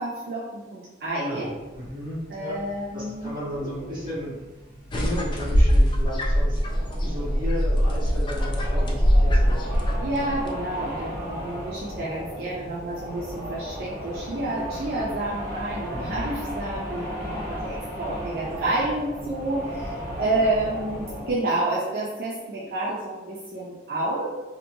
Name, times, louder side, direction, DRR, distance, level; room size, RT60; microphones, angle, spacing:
voice 1, 0.0-1.5 2.3-3.3 10.0-24.3, right 2 dB, 60° right, -6 dB, 0.4 m, -29 dB
sound 1, 1.4-21.3, equal, 10° right, 0.9 m, -36 dB
voice 2, 1.9-2.6 2.9-4.3 4.9-6.6 7.0-10.3 15.9-16.1 20.3-20.5, equal, 25° right, -11 dB, 1.3 m, -34 dB
sound 2, 4.9-10.5, equal, 25° left, 0.3 m, -22 dB
2.8 x 2.2 x 2.6 m, 1.2 s
head